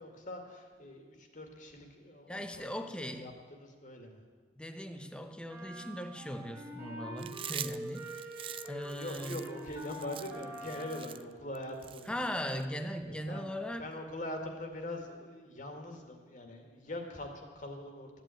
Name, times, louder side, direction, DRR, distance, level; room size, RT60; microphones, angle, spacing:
voice 1, 0.0-4.2 8.8-12.1 12.5-12.6 13.1-18.2, left 1 dB, 45° left, 4 dB, 2.0 m, -43 dB
voice 2, 2.3-3.3 4.6-8.4 8.7-9.4 12.1-13.9, equal, 5° left, 8 dB, 0.9 m, -39 dB
sound 1, 5.5-11.2, right 1 dB, 15° right, 3.0 m, -44 dB
Chewing mastication, 7.2-12.6, right 10 dB, 30° right, 0.4 m, -44 dB
14.0 x 9.2 x 9.1 m, 1.5 s
head